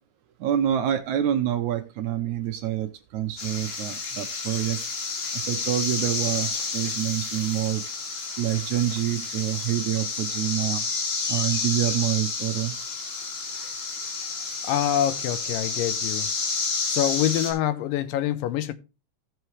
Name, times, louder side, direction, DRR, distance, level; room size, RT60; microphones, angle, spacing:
voice 1, 0.4-4.8 5.3-7.8 8.4-10.8 11.3-12.8, right 12 dB, 70° right, 2.0 m, -27 dB
sound 1, 3.4-17.5, left 4 dB, 60° left, 3.7 m, -30 dB
voice 2, 14.6-16.3 16.9-18.7, left 11 dB, 85° left, 2.4 m, -25 dB
16.0 x 5.7 x 3.1 m
omnidirectional pair, 4.0 m